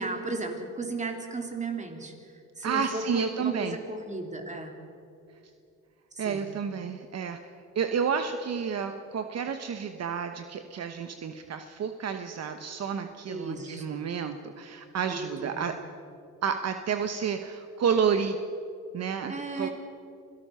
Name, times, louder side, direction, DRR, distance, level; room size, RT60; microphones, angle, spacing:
voice 1, 0.0-4.8 6.1-6.5 13.3-14.0 15.1-15.7 19.3-19.7, right 2 dB, 25° right, 3 dB, 3.5 m, -35 dB
voice 2, 2.6-3.8 6.2-15.7 16.4-18.4 18.9-19.7, right 7 dB, 55° right, 7 dB, 1.1 m, -30 dB
26.0 x 17.5 x 5.8 m, 2.6 s
cardioid pair, 90°, 30 cm